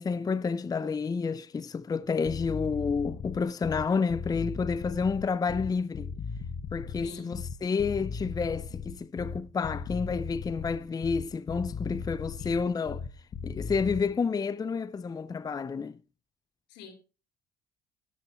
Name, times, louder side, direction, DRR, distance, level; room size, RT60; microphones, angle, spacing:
voice 1, 0.0-6.1 6.7-13.0 13.4-16.0, left 5 dB, 20° left, 0.5 m, -30 dB
sound 1, 2.1-14.1, left 5 dB, 45° left, 1.4 m, -37 dB
voice 2, 7.0-7.4 12.4-12.9 16.7-16.9, left 6 dB, 90° left, 3.6 m, -48 dB
13.5 x 9.6 x 4.3 m
cardioid pair, 110°, 17 cm